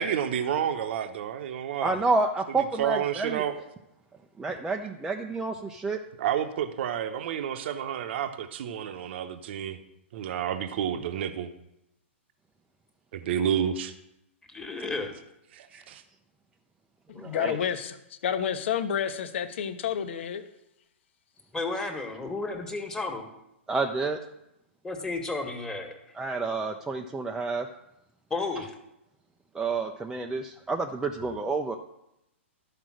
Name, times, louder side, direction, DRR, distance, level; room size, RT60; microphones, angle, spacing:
voice 1, 0.0-2.0 2.6-3.6 6.2-9.8 10.1-11.5 13.1-13.9 15.5-16.0, right 9 dB, 60° right, 0.9 m, -30 dB
voice 2, 1.8-3.4 4.4-6.0 15.7-15.8 17.2-17.6 23.7-24.2 26.2-27.7 29.5-31.8, right 3 dB, 10° right, 0.6 m, -29 dB
voice 3, 14.5-15.1 21.5-23.3 24.8-26.1 28.3-28.7 31.2-31.3, left 3 dB, 10° left, 1.6 m, -33 dB
voice 4, 17.1-18.0 18.2-20.5, left 8 dB, 65° left, 1.1 m, -29 dB
12.0 x 5.2 x 6.3 m
hypercardioid pair, 130°, 7 cm